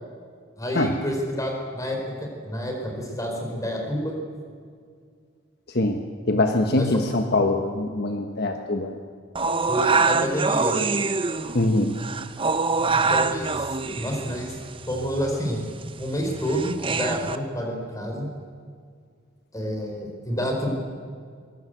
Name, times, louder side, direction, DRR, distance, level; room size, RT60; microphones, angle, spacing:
voice 1, 0.6-4.1 6.7-7.0 9.7-10.9 12.9-14.6 14.9-15.6 16.0-18.3 19.5-20.8, equal, 15° left, 2 dB, 4.6 m, -29 dB
voice 2, 6.3-9.0 11.5-12.0, left 2 dB, 50° left, 5 dB, 1.3 m, -23 dB
sound 1, 9.4-17.4, right 4 dB, 25° right, 0.8 m, -25 dB
23.0 x 22.0 x 8.1 m, 2.1 s
head